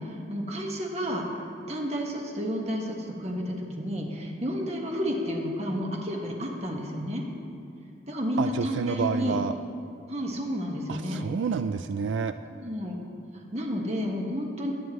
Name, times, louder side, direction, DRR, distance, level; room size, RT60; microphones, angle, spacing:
voice 1, 0.0-1.4 1.7-7.2 8.1-9.4 10.1-11.2 12.5-13.0 13.3-14.7, equal, 35° right, -1 dB, 1.6 m, -31 dB
voice 2, 8.4-9.5 10.9-12.3, right 5 dB, 85° right, 10 dB, 0.3 m, -29 dB
21.5 x 9.3 x 3.2 m, 2.5 s
head